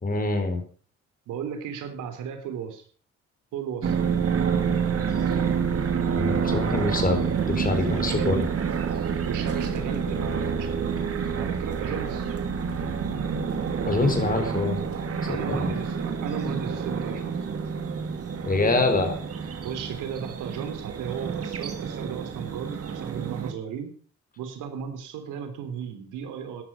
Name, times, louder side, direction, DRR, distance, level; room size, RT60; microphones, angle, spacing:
voice 1, 0.0-0.6 6.1-8.4 13.8-14.8 15.3-15.7 18.4-19.2, left 3 dB, 30° left, 5 dB, 4.4 m, -25 dB
voice 2, 1.3-2.8 3.5-4.0 7.9-8.4 9.2-12.3 15.3-17.5 19.6-23.9 24.4-26.6, right 8 dB, 90° right, 7 dB, 3.4 m, -35 dB
sound 1, 3.8-23.5, right 6 dB, 50° right, 2.5 m, -28 dB
13.5 x 11.5 x 5.5 m, 0.44 s
cardioid pair, 90°, 30 cm